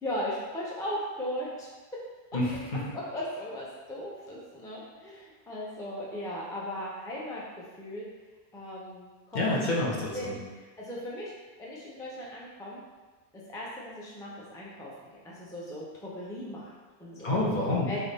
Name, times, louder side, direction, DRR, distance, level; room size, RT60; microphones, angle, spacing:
voice 1, 0.0-2.0 2.9-8.1 8.5-9.5 10.1-12.8 13.3-16.7 17.0-17.3 17.6-18.0, left 1 dB, 5° left, -5 dB, 0.4 m, -38 dB
voice 2, 2.3-2.8 9.3-10.3 17.2-17.9, left 2 dB, 50° left, -5 dB, 0.9 m, -28 dB
3.4 x 2.6 x 4.0 m, 1.3 s
omnidirectional pair, 1.1 m